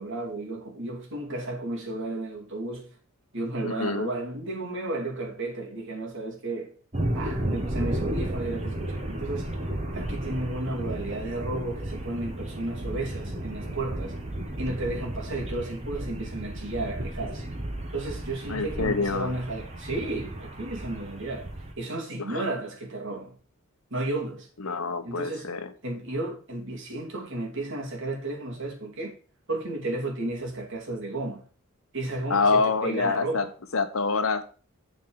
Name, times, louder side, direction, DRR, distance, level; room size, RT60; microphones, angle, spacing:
voice 1, 0.0-2.9 3.3-6.7 7.1-9.6 9.9-14.2 14.6-17.5 17.9-21.5 21.8-23.3 23.9-24.5 25.0-25.5 25.8-29.2 29.5-31.4 31.9-33.5, right 2 dB, 60° right, 2.9 m, -33 dB
voice 2, 3.6-4.1 18.5-19.4 22.3-22.4 24.6-25.7 32.3-33.5 33.7-34.4, left 4 dB, 75° left, 1.0 m, -26 dB
sound 1, 6.9-21.7, right 1 dB, 30° right, 1.4 m, -33 dB
6.9 x 4.6 x 6.9 m
head